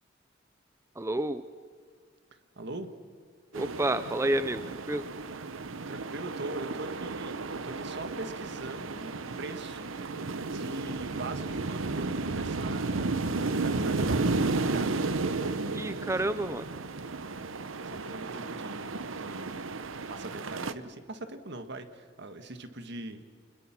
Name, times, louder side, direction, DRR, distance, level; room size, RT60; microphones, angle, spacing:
voice 1, 1.0-1.4 3.5-5.0 15.7-16.6, right 1 dB, 15° right, 12 dB, 0.5 m, -29 dB
voice 2, 2.6-2.9 5.3-5.5 5.9-9.9 10.4-16.5 17.8-19.7 20.1-23.3, right 2 dB, 60° right, 8 dB, 1.7 m, -42 dB
sound 1, 3.5-20.7, right 3 dB, 85° right, 0.9 m, -33 dB
28.5 x 21.0 x 6.0 m, 2.1 s
head